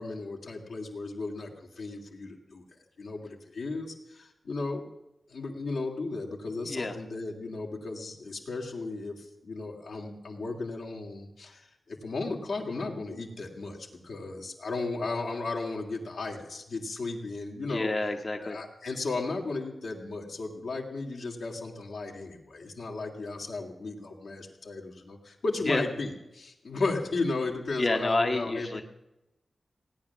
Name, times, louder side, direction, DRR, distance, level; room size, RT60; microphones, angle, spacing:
voice 1, 0.0-2.6 3.0-4.9 5.3-17.9 18.4-28.8, left 3 dB, 85° left, -1 dB, 2.6 m, -35 dB
voice 2, 17.7-18.6 25.7-25.8 27.8-28.8, left 2 dB, 45° left, 3 dB, 1.1 m, -28 dB
17.5 x 9.6 x 7.2 m, 0.92 s
cardioid pair, 40°, 0 cm